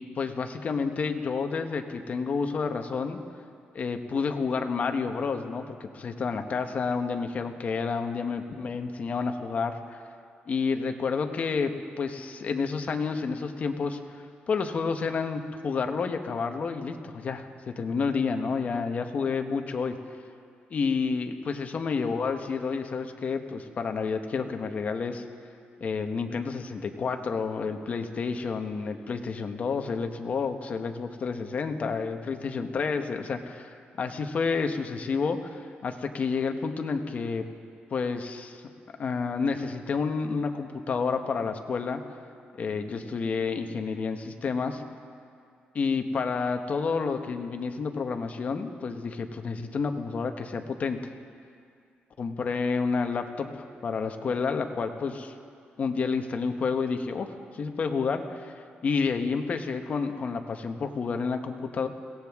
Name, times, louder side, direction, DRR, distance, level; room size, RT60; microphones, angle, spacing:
voice 1, 0.0-3.2 3.7-10.0 10.5-14.0 14.5-19.9 20.7-25.3 25.8-37.4 37.9-38.6 39.0-42.0 42.6-44.8 45.7-51.0 52.2-55.3 55.8-58.5 58.8-61.9, left 5 dB, 45° left, 6 dB, 1.0 m, -30 dB
22.0 x 17.0 x 3.6 m, 2.2 s
cardioid pair, 140°, 4 cm